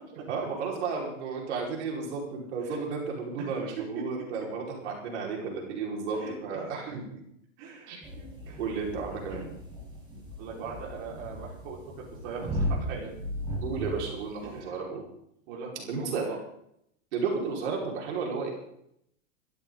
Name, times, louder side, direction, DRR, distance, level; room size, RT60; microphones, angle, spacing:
voice 1, 0.3-7.0 7.9-8.0 8.6-9.4 13.6-15.0 15.9-16.3 17.1-18.5, right 5 dB, 60° right, -1 dB, 5.4 m, -33 dB
voice 2, 6.2-6.6 6.9-7.2 7.6-8.6 9.3-9.4 10.4-11.9 12.2-13.2 14.4-14.7 15.5-16.4, right 5 dB, 40° right, -3 dB, 5.3 m, -41 dB
sound 1, 8.0-14.6, equal, 10° right, 5.4 m, -36 dB
20.5 x 14.0 x 4.1 m, 0.74 s
hypercardioid pair, 150°, 38 cm